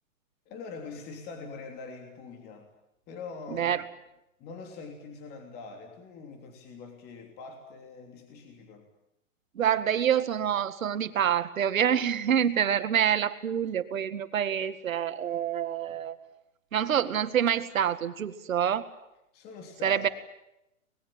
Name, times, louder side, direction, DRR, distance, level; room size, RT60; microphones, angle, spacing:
voice 1, 0.5-2.7 3.1-3.7 4.4-8.8 15.9-16.0 19.3-20.1, left 4 dB, 25° left, 4 dB, 3.2 m, -43 dB
voice 2, 3.5-3.8 9.5-16.2 16.7-18.8 19.8-20.1, right 9 dB, 80° right, 11 dB, 2.1 m, -27 dB
24.0 x 21.0 x 9.0 m, 0.86 s
hypercardioid pair, 150°, 40 cm